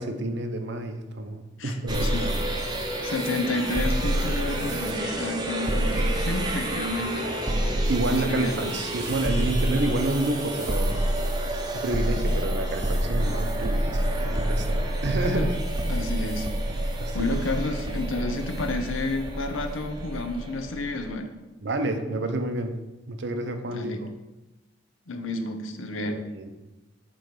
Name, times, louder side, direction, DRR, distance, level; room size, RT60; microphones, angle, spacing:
voice 1, 0.0-2.2 7.9-11.0 11.7-15.5 17.0-17.2 21.6-22.8 23.1-24.1 26.0-26.5, right 2 dB, 60° right, 7 dB, 0.6 m, -29 dB
voice 2, 1.6-2.3 3.0-7.3 8.1-8.6 15.2-15.5 15.9-16.5 17.1-21.4 23.7-24.0 25.1-26.2, left 2 dB, 80° left, 6 dB, 0.8 m, -30 dB
sound 1, 1.9-21.1, right 1 dB, 20° right, 0.7 m, -28 dB
7.6 x 3.1 x 5.1 m, 1.1 s
head